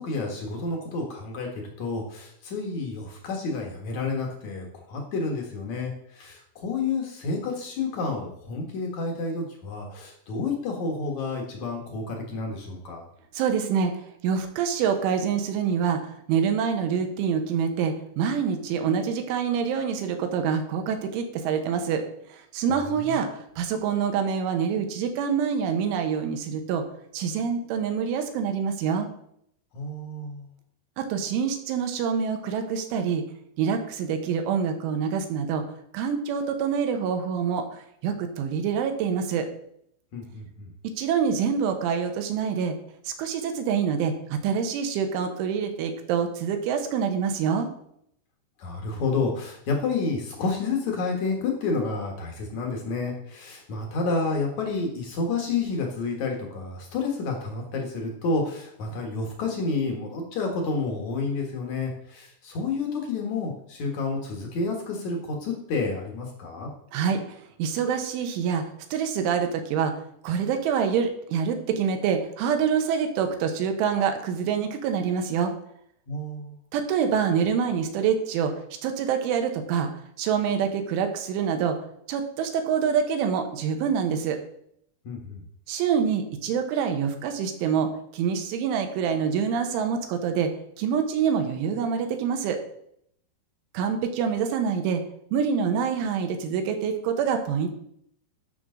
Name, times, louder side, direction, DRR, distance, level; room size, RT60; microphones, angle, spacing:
voice 1, 0.0-1.5 1.8-13.1 22.9-23.2 29.7-30.5 40.1-40.7 48.6-66.7 76.1-76.5 85.0-85.4, left 3 dB, 60° left, 1 dB, 2.0 m, -30 dB
voice 2, 13.4-13.9 14.2-22.0 22.5-23.3 23.6-26.8 27.1-29.1 31.0-33.2 33.6-35.6 35.9-37.7 38.0-39.5 41.0-42.8 43.1-47.7 66.9-67.2 67.6-68.6 68.9-69.9 70.2-75.5 76.7-78.5 78.8-79.9 80.2-81.8 82.1-84.4 85.7-90.5 90.8-92.6 93.8-95.0 95.3-97.7, right 7 dB, 80° right, 6 dB, 3.5 m, -26 dB
13.5 x 6.1 x 3.9 m, 0.71 s
omnidirectional pair, 5.6 m